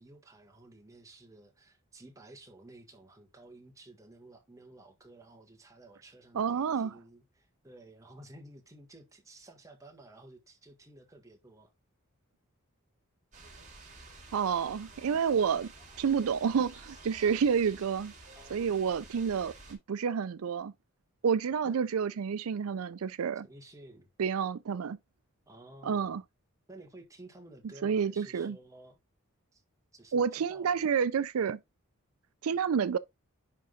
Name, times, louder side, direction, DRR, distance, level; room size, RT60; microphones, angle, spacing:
voice 1, 0.0-11.7 18.3-18.7 21.6-21.8 23.4-24.1 25.5-26.2 26.7-29.0 29.5-29.6 29.9-30.9, right 2 dB, 15° right, 1.7 m, -53 dB
voice 2, 6.3-6.9 14.3-15.7 16.0-18.1 18.5-20.7 21.2-23.5 24.2-25.0 25.8-26.2 27.8-28.6 30.1-31.6 32.4-33.0, right 6 dB, 80° right, 0.4 m, -29 dB
sound 1, 13.3-19.8, right 3 dB, 35° right, 3.8 m, -51 dB
10.5 x 3.8 x 3.8 m
head